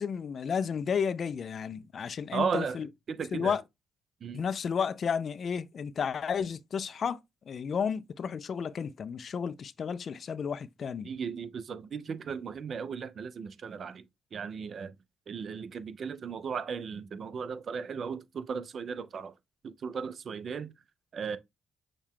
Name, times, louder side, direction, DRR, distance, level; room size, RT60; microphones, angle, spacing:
voice 1, 0.0-2.9 3.3-3.6 4.3-7.2 7.5-11.1, left 6 dB, 50° left, 0.3 m, -32 dB
voice 2, 2.3-3.5 4.2-4.4 11.0-14.0 14.3-14.9 15.3-19.3 19.6-20.7 21.1-21.4, right 6 dB, 50° right, 0.5 m, -36 dB
6.4 x 2.2 x 3.6 m
cardioid pair, 90°, 0 cm